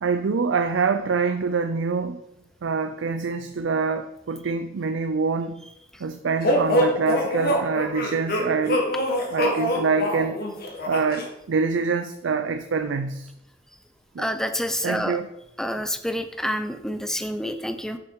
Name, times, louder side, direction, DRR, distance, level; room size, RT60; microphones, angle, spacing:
voice 1, 0.0-2.2 2.6-5.6 6.0-8.9 9.3-10.4 10.9-13.3 14.1-14.3 14.8-15.3, right 5 dB, 75° right, 9 dB, 0.5 m, -25 dB
sound 1, 6.4-11.3, equal, 55° left, 1.6 m, -24 dB
voice 2, 14.2-15.2 15.6-18.0, equal, 5° left, 9 dB, 0.5 m, -28 dB
6.8 x 6.3 x 4.7 m, 0.87 s
head